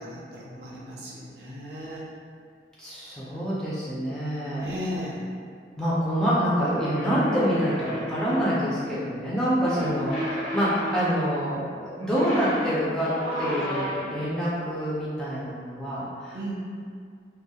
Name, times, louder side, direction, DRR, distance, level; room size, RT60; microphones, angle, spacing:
voice 1, 0.0-2.0 4.5-5.3 9.6-10.3 16.3-16.5, equal, 60° right, -6 dB, 0.5 m, -36 dB
voice 2, 2.8-4.8 5.8-13.1 13.4-16.5, equal, 5° left, -10 dB, 0.4 m, -26 dB
sound 1, 6.8-8.6 9.6-11.4 12.0-14.3, equal, 85° left, 0.8 m, -32 dB
2.2 x 2.0 x 2.7 m, 2.2 s
head